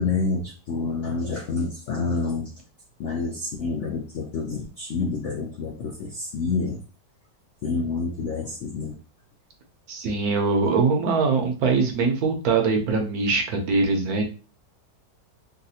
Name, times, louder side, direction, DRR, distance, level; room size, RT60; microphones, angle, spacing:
voice 1, 0.0-2.5 3.0-6.8 7.6-8.9, left 4 dB, 75° left, 1 dB, 0.6 m, -28 dB
voice 2, 9.9-14.2, right 4 dB, 65° right, 3 dB, 1.1 m, -22 dB
3.9 x 2.2 x 2.7 m, 0.34 s
omnidirectional pair, 1.9 m